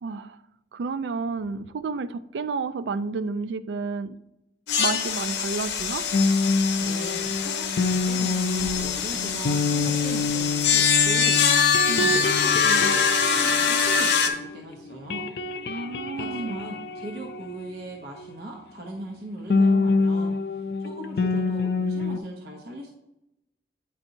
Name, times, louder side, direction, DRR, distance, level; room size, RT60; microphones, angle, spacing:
voice 1, 0.0-0.4 0.7-4.2 4.8-6.0 11.9-12.2 15.7-16.6, right 4 dB, 80° right, 0.4 m, -31 dB
sound 1, 4.7-14.3, left 6 dB, 90° left, 0.8 m, -24 dB
sound 2, 6.1-14.6 14.9-18.3 19.5-22.2, left 3 dB, 65° left, 0.4 m, -26 dB
voice 2, 6.8-11.4 11.9-15.3 16.2-20.4 20.8-22.9, right 1 dB, 60° right, 0.8 m, -39 dB
9.0 x 4.3 x 2.6 m
head